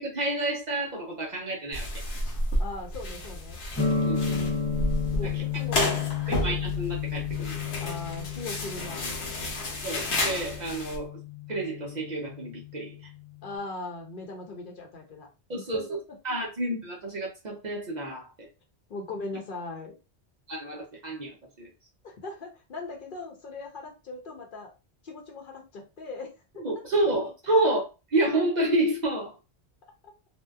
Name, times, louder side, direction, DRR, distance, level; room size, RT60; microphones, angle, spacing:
voice 1, 0.0-1.9 4.0-4.4 5.2-5.4 6.3-7.6 9.8-11.2 11.5-12.9 15.5-16.0 16.2-18.5 20.5-21.7 26.6-27.8 28.1-29.3, right 2 dB, 50° right, -2 dB, 0.6 m, -29 dB
sound 1, 1.7-11.0, left 1 dB, 80° left, 1.0 m, -31 dB
voice 2, 2.6-3.6 4.2-4.6 5.1-6.0 7.8-9.0 13.4-15.3 15.6-16.0 18.9-19.9 22.0-24.7 25.0-27.0, left 2 dB, 55° left, 0 dB, 0.8 m, -39 dB
sound 2, 3.8-13.5, left 6 dB, 20° left, 0.7 m, -32 dB
2.6 x 2.1 x 2.3 m, 0.29 s
omnidirectional pair, 1.1 m